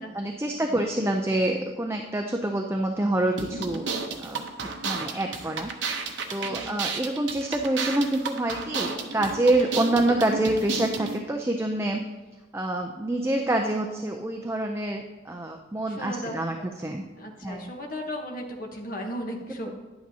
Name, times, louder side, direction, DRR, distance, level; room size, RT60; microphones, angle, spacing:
voice 1, 0.1-3.9 4.2-6.0 6.3-12.0 12.5-17.0 17.4-17.7, right 1 dB, 15° right, 3 dB, 0.4 m, -27 dB
sound 1, 3.4-11.2, right 4 dB, 70° right, 0.8 m, -32 dB
voice 2, 6.4-6.9 15.9-16.3 16.6-16.7 17.1-19.7, equal, 45° left, 1 dB, 1.0 m, -36 dB
10.5 x 8.6 x 2.8 m, 1.2 s
head